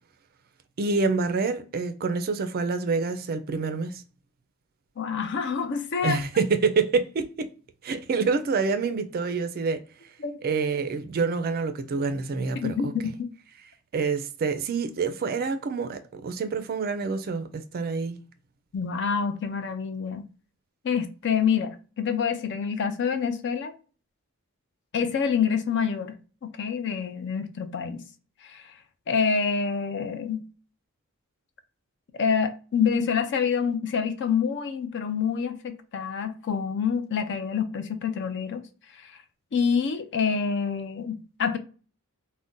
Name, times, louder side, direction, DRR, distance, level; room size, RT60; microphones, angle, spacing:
voice 1, 0.8-4.0 6.0-7.5 7.8-9.8 10.4-12.9 13.9-18.2, right 4 dB, 45° right, 0.4 m, -27 dB
voice 2, 5.0-6.2 10.2-10.3 12.6-13.3 18.7-20.3 20.8-23.7 24.9-26.2 26.4-28.0 28.4-28.7 29.1-30.4 32.2-38.6 38.9-39.2 39.5-41.6, left 6 dB, 55° left, 0.4 m, -27 dB
2.5 x 2.1 x 3.6 m
head